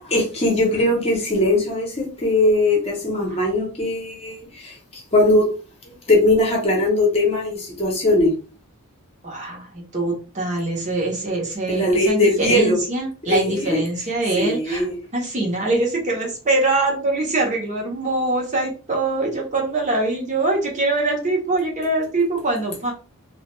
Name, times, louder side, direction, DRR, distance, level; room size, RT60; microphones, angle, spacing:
voice 1, 0.1-4.4 4.6-4.7 5.1-5.5 6.1-8.3 11.7-12.8 13.3-13.8 14.3-14.9, left 1 dB, 30° left, 0 dB, 0.8 m, -19 dB
voice 2, 9.2-14.8 15.1-22.9, right 2 dB, 35° right, -1 dB, 0.8 m, -23 dB
2.3 x 2.1 x 3.0 m, 0.35 s
head